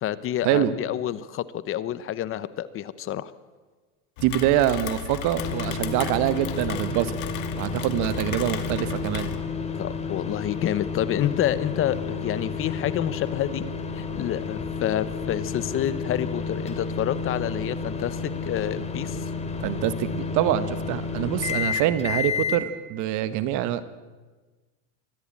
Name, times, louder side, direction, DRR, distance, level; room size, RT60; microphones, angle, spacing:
voice 1, 0.0-3.3 9.8-13.7 13.9-19.3, left 11 dB, 35° left, 16 dB, 0.9 m, -28 dB
Rain, 4.2-9.4, left 11 dB, 65° left, 2.4 m, -35 dB
voice 2, 4.2-7.2 7.5-9.3 19.6-23.8, right 12 dB, 50° right, 13 dB, 1.6 m, -25 dB
sound 1, 5.3-22.6, left 4 dB, 15° left, 2.5 m, -31 dB
24.0 x 15.0 x 8.9 m, 1.3 s
supercardioid pair, 130°, 37 cm